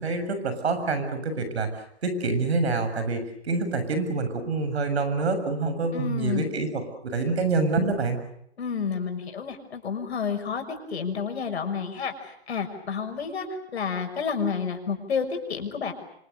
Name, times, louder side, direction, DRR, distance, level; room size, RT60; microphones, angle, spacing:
voice 1, 0.0-8.2, right 3 dB, 75° right, 10 dB, 7.3 m, -27 dB
voice 2, 5.9-6.5 8.6-13.5 13.7-15.9, left 6 dB, 75° left, 5 dB, 6.3 m, -30 dB
28.0 x 26.0 x 6.9 m, 0.72 s
hypercardioid pair, 145°, 33 cm